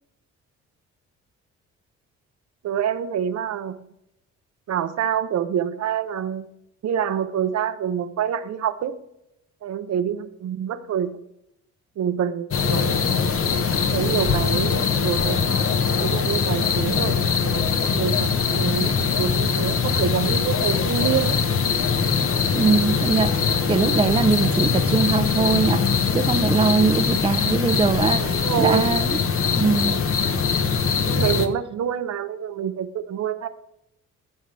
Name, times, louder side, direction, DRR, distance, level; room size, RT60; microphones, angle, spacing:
voice 1, 2.6-3.8 4.7-6.5 6.8-8.9 9.6-11.2 12.0-12.9 13.9-15.6 16.0-17.2 17.4-21.4 28.2-29.0 31.1-33.5, right 9 dB, 60° right, 10 dB, 0.8 m, -26 dB
sound 1, 12.5-31.5, left 5 dB, 45° left, 1.0 m, -22 dB
voice 2, 22.5-23.3 23.7-25.8 26.1-29.2 29.6-30.0, right 4 dB, 20° right, 9 dB, 0.6 m, -21 dB
15.0 x 5.6 x 3.3 m, 0.82 s
cardioid pair, 90°, 30 cm